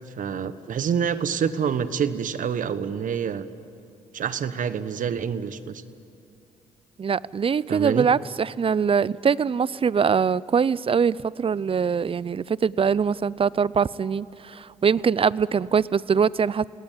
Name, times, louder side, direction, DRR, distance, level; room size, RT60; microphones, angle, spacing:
voice 1, 0.2-3.5 4.1-5.8 7.7-8.1, right 7 dB, 60° right, 13 dB, 1.3 m, -27 dB
voice 2, 7.0-16.6, right 6 dB, 35° right, 21 dB, 0.6 m, -23 dB
29.5 x 18.5 x 9.2 m, 2.6 s
supercardioid pair, 55°, 15 cm